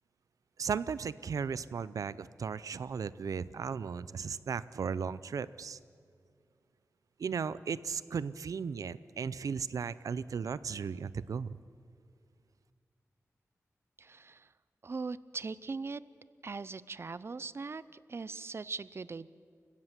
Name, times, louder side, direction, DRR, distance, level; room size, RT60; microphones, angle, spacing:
voice 1, 0.6-5.8 7.2-11.6, right 6 dB, 90° right, 17 dB, 0.6 m, -36 dB
voice 2, 14.0-14.5 14.8-16.0 16.4-19.3, right 4 dB, 50° right, 18 dB, 0.6 m, -40 dB
29.5 x 16.0 x 7.5 m, 2.2 s
wide cardioid pair, 85°, 6 cm